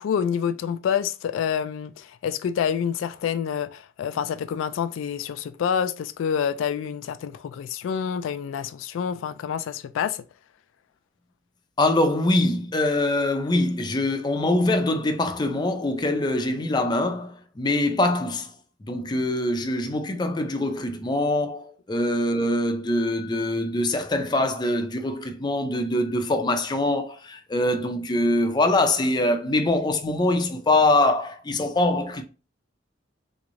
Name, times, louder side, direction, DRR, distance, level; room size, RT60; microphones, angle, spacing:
voice 1, 0.0-10.2, left 7 dB, 90° left, 0.3 m, -27 dB
voice 2, 11.8-18.5 18.8-32.2, left 2 dB, 20° left, 0.4 m, -23 dB
3.4 x 3.1 x 2.5 m
head